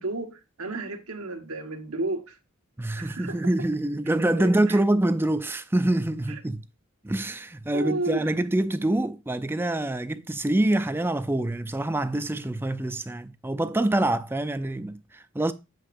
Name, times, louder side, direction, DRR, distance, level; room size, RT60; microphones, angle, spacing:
voice 1, 0.0-2.3 3.0-3.4 4.4-4.8 7.7-8.3, right 2 dB, 75° right, 1.3 m, -32 dB
voice 2, 2.8-6.6 7.0-15.5, right 1 dB, 10° right, 0.4 m, -25 dB
8.5 x 7.6 x 2.6 m
head